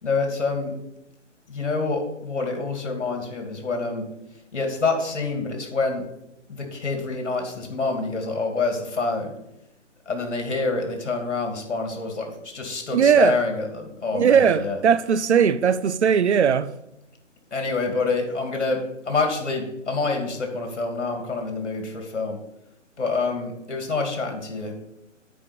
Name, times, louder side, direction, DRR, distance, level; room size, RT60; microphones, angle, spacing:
voice 1, 0.0-0.7 1.5-4.1 4.5-6.0 6.5-9.3 10.1-14.8 17.5-22.4 23.0-24.8, left 3 dB, 65° left, 2.7 m, -27 dB
voice 2, 12.9-13.4 14.1-16.7, right 7 dB, 65° right, 0.6 m, -19 dB
8.7 x 5.1 x 6.8 m
figure-of-eight pair, 145°, 37 cm